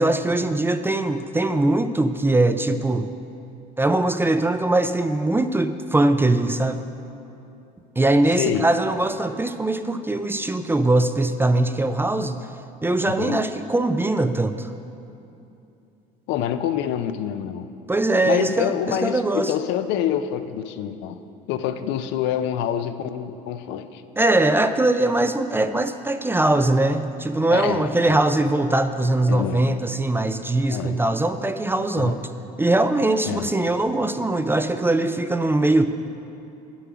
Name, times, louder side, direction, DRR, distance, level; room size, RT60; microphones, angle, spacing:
voice 1, 0.0-3.1 3.8-6.8 8.0-12.5 12.8-14.7 17.9-19.5 24.2-32.2 32.6-35.8, right 2 dB, 10° right, 9 dB, 0.4 m, -21 dB
voice 2, 8.4-8.7 13.2-13.4 16.3-17.7 18.2-21.2 21.5-24.0 27.5-28.2 29.3-29.7 30.7-31.0 32.0-32.2 33.2-33.5, left 10 dB, 70° left, 10 dB, 0.5 m, -26 dB
9.1 x 7.0 x 6.0 m, 2.7 s
supercardioid pair, 80°, 19 cm